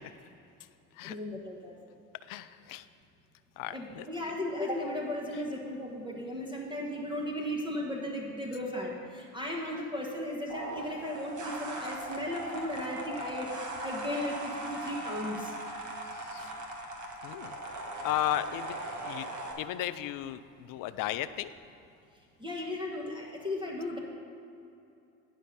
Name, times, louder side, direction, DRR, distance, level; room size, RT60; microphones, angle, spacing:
voice 1, 1.0-1.7 3.7-15.5 22.4-24.0, left 1 dB, 10° right, -3 dB, 1.3 m, -36 dB
voice 2, 2.3-2.8 3.6-4.0 16.3-16.4 17.2-17.5 18.0-18.8 19.0-19.2 19.6-20.4 20.7-21.5, left 13 dB, 45° left, 14 dB, 0.5 m, -34 dB
sound 1, 10.5-19.5, right 1 dB, 35° right, 1.5 m, -39 dB
9.4 x 5.1 x 5.7 m, 2.7 s
hypercardioid pair, 70°, 49 cm